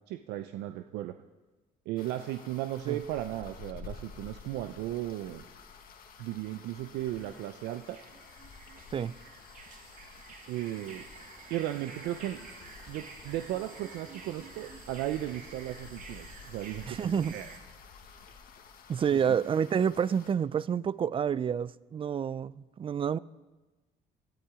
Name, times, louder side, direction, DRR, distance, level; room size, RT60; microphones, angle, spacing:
voice 1, 0.1-1.1 1.9-5.4 6.2-8.0 10.5-11.1 11.5-12.5 12.9-17.5 19.1-19.2, right 14 dB, 90° right, 0.6 m, -36 dB
sound 1, 2.0-20.3, left 5 dB, 60° left, 1.6 m, -51 dB
sound 2, 6.5-17.6, right 5 dB, 55° right, 2.2 m, -50 dB
voice 2, 16.9-17.4 18.9-23.2, right 7 dB, 30° right, 0.4 m, -29 dB
18.5 x 12.5 x 4.9 m
cardioid pair, 110°, 17 cm